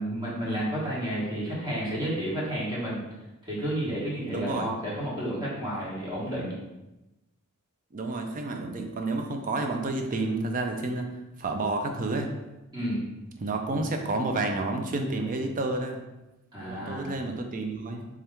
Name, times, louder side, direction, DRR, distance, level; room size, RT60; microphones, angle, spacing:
voice 1, 0.0-3.0 3.4-6.5 12.7-13.0 16.5-17.1, right 1 dB, 20° right, -7 dB, 1.3 m, -31 dB
voice 2, 4.3-4.7 7.9-11.1 11.4-12.3 13.4-16.0 16.7-18.1, right 2 dB, 35° right, 4 dB, 0.4 m, -30 dB
3.6 x 2.9 x 3.4 m, 1.0 s
head